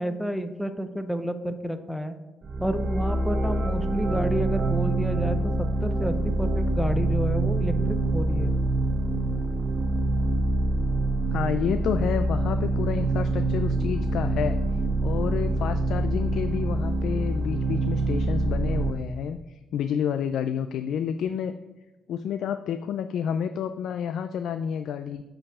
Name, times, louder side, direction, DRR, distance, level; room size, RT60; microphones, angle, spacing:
voice 1, 0.0-2.2 2.6-8.5, equal, ahead, 8 dB, 0.7 m, -30 dB
sound 1, 2.4-18.9, right 2 dB, 50° right, 0.9 m, -25 dB
voice 2, 11.3-14.6 15.0-21.5 22.1-25.2, left 8 dB, 75° left, 9 dB, 0.3 m, -29 dB
7.6 x 4.6 x 4.8 m, 1.1 s
cardioid pair, 90°, 0 cm